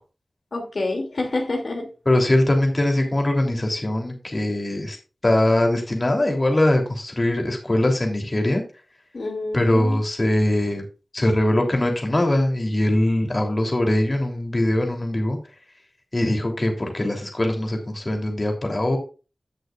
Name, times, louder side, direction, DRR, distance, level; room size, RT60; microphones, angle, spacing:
voice 1, 0.5-1.9 9.1-10.0, left 2 dB, 65° left, 1 dB, 2.6 m, -27 dB
voice 2, 2.0-5.0 5.2-8.6 9.5-10.8 11.1-15.4 16.1-19.0, left 1 dB, 35° left, 2 dB, 3.2 m, -21 dB
16.5 x 6.5 x 2.5 m, 0.32 s
wide cardioid pair, 80°, 0 cm